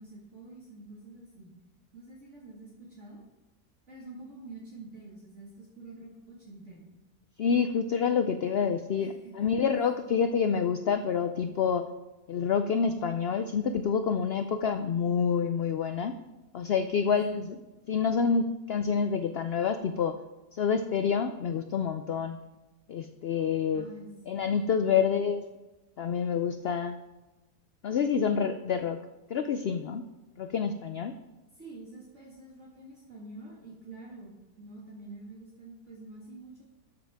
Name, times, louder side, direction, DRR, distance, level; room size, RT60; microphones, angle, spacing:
voice 1, 0.0-1.5 1.9-3.2 3.9-6.9 9.0-10.0 16.9-17.2 23.7-24.4 24.8-25.2 31.5-36.7, right 2 dB, 50° right, -5 dB, 2.3 m, -47 dB
voice 2, 7.4-11.9 12.3-16.1 16.5-17.4 17.9-20.1 20.5-22.4 22.9-23.9 24.3-25.4 26.0-27.0 27.8-29.0 29.3-30.0 30.4-31.1, left 6 dB, 85° left, 9 dB, 0.5 m, -27 dB
12.5 x 7.0 x 3.5 m, 1.1 s
omnidirectional pair, 1.6 m